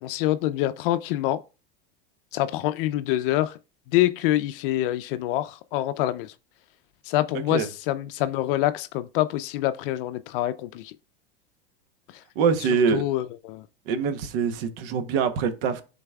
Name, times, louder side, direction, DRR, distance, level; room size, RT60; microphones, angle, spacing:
voice 1, 0.0-1.4 2.3-3.6 3.9-6.3 7.1-10.9 12.9-13.6, left 14 dB, 60° left, 0.5 m, -26 dB
voice 2, 12.4-13.0 13.9-15.8, right 6 dB, 65° right, 1.0 m, -24 dB
10.5 x 4.0 x 2.3 m
supercardioid pair, 115°, 30 cm